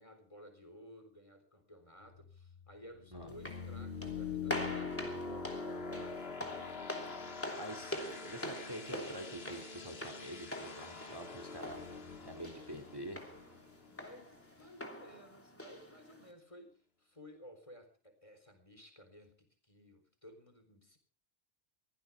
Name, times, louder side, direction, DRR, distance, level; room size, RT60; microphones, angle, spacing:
voice 1, 0.0-6.8 13.9-21.0, equal, 30° left, 6 dB, 4.0 m, -56 dB
sound 1, 2.0-14.7, left 5 dB, 65° left, 2.1 m, -44 dB
sound 2, 3.3-16.3, equal, 10° left, 2.9 m, -45 dB
voice 2, 7.6-8.0 8.3-11.8 12.2-13.2, right 1 dB, 20° right, 5 dB, 2.3 m, -46 dB
23.0 x 16.0 x 3.4 m, 0.36 s
omnidirectional pair, 1.1 m